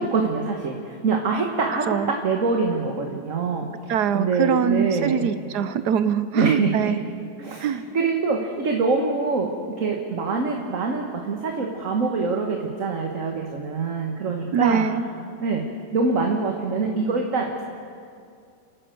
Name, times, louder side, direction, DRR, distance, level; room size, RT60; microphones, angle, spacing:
voice 1, 0.0-5.3 6.4-6.9 7.4-14.9 15.4-15.6 15.9-17.6, right 4 dB, 50° right, 2 dB, 1.8 m, -25 dB
voice 2, 3.9-7.0 7.6-7.8 14.5-15.1, right 7 dB, 75° right, 12 dB, 1.4 m, -23 dB
29.5 x 11.5 x 7.8 m, 2.3 s
omnidirectional pair, 1.8 m